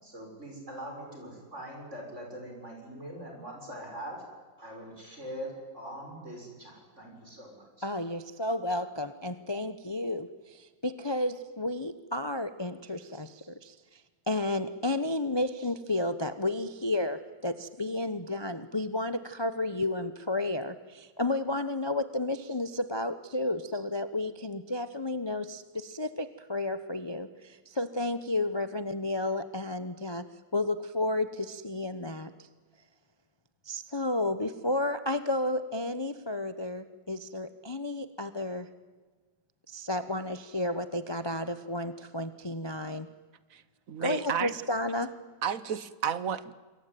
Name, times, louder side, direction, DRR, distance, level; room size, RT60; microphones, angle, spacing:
voice 1, 0.0-4.2 4.6-7.9, right 1 dB, 35° right, 1 dB, 7.0 m, -42 dB
voice 2, 7.8-14.0 14.3-30.2 30.5-32.3 33.6-38.7 39.7-43.1 44.0-45.1, left 2 dB, 25° left, 11 dB, 0.6 m, -32 dB
voice 3, 43.9-44.5 45.4-46.5, right 8 dB, 50° right, 15 dB, 1.2 m, -31 dB
27.0 x 22.5 x 9.3 m, 1.4 s
omnidirectional pair, 2.1 m